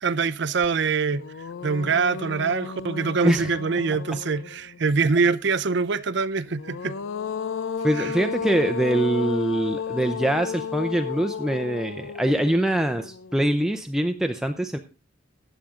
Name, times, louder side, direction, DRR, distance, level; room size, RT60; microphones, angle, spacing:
voice 1, 0.0-1.2 1.6-6.9 8.0-8.1, right 4 dB, 65° right, 0.6 m, -24 dB
sound 1, 0.6-0.7 1.1-4.8 6.5-13.7, left 5 dB, 85° left, 0.5 m, -33 dB
voice 2, 7.8-14.8, right 1 dB, 5° right, 0.6 m, -24 dB
14.0 x 9.2 x 3.7 m
head